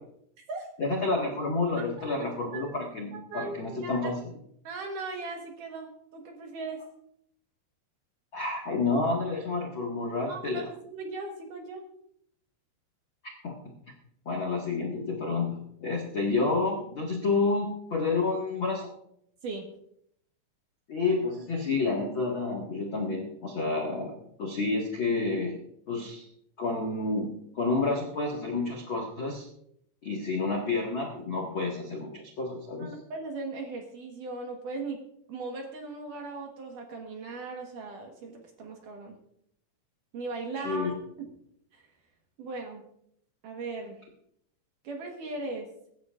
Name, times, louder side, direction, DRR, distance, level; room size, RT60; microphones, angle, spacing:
voice 1, 0.8-4.2 8.3-10.6 13.4-13.6 14.2-18.9 20.9-25.6 25.9-26.3 26.6-29.5 30.0-32.9 40.6-40.9, left 3 dB, 90° left, -1 dB, 1.1 m, -29 dB
voice 2, 1.8-2.2 2.5-2.8 3.1-4.1 4.6-6.8 10.3-11.8 19.4-19.7 32.8-35.0 35.3-39.2 40.1-41.3 41.7-41.8 42.4-42.8 43.4-44.0 44.8-45.7, right 3 dB, 60° right, 2 dB, 2.3 m, -38 dB
23.5 x 11.0 x 2.5 m, 0.73 s
omnidirectional pair, 5.3 m